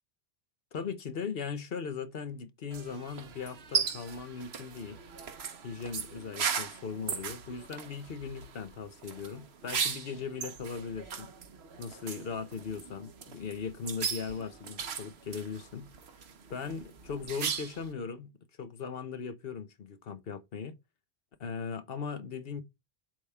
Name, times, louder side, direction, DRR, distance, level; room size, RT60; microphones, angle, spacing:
voice 1, 0.7-5.0 5.6-11.3 11.8-15.9 16.5-18.3 18.6-20.7 21.4-22.6, left 6 dB, 65° left, 1.1 m, -39 dB
sound 1, 2.7-17.9, right 6 dB, 75° right, 1.2 m, -38 dB
7.7 x 3.5 x 5.5 m
omnidirectional pair, 1.1 m